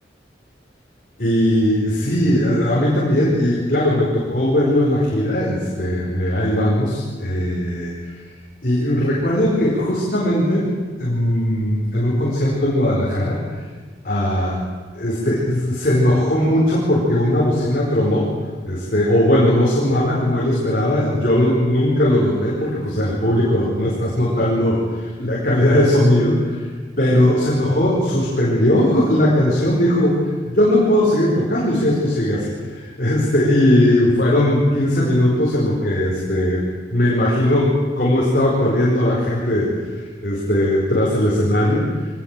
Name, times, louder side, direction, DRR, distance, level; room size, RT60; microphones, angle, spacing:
voice 1, 1.2-7.9 8.6-10.7 11.0-13.4 14.0-14.6 14.9-18.3 18.6-26.6 27.0-30.1 30.5-42.1, left 1 dB, 50° left, -4 dB, 4.7 m, -18 dB
24.0 x 19.5 x 7.5 m, 1.5 s
head